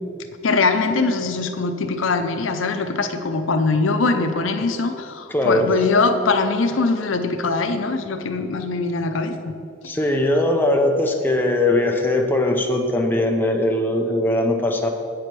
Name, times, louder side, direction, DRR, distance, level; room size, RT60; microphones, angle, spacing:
voice 1, 0.4-9.5 9.8-9.9, left 3 dB, 80° left, 8 dB, 0.6 m, -22 dB
voice 2, 5.3-5.7 9.8-14.9, left 1 dB, 10° left, 2 dB, 0.5 m, -20 dB
8.1 x 4.9 x 6.0 m, 2.4 s
head